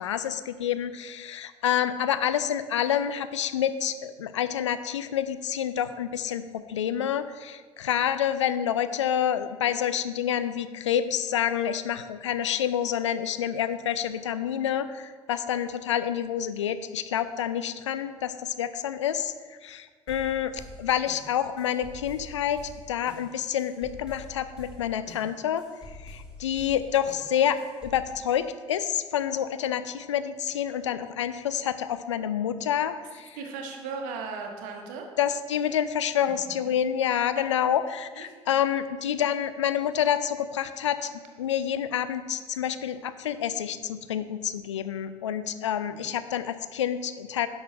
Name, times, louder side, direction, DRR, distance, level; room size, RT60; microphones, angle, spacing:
voice 1, 0.0-33.4 35.2-47.5, left 9 dB, 80° left, 12 dB, 0.4 m, -28 dB
sound 1, 20.1-28.1, left 2 dB, 5° right, 1.8 m, -47 dB
voice 2, 33.3-35.1 37.3-37.4 38.1-38.3 45.8-46.1, right 5 dB, 60° right, 3 dB, 1.2 m, -37 dB
10.0 x 6.3 x 2.5 m, 1.5 s
figure-of-eight pair, 60°, 15 cm